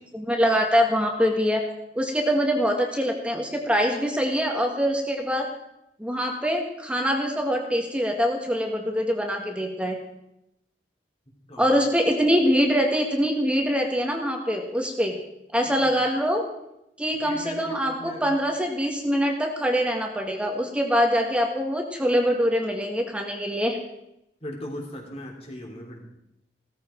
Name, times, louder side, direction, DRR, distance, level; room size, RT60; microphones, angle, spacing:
voice 1, 0.1-1.6 1.9-5.5 6.0-10.0 11.6-15.2 15.5-16.4 17.0-23.8, equal, 5° right, 2 dB, 1.8 m, -24 dB
voice 2, 17.2-18.2 24.4-26.0, left 1 dB, 35° left, 1 dB, 3.6 m, -38 dB
17.0 x 14.5 x 4.6 m, 0.81 s
head